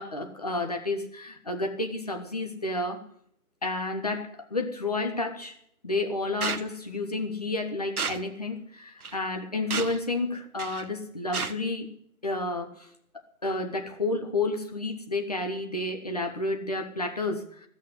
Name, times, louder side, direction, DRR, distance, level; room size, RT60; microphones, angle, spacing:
voice 1, 0.0-3.0 3.6-5.6 5.8-11.9 12.2-12.9 13.4-17.7, left 2 dB, 25° left, 4 dB, 1.1 m, -31 dB
sound 1, 6.4-6.6 8.0-8.2 9.0-9.1 9.7-10.0 10.6-10.9 11.3-11.5, right 5 dB, 75° right, 1.0 m, -31 dB
15.5 x 6.6 x 9.6 m, 0.70 s
figure-of-eight pair, 165°, 44 cm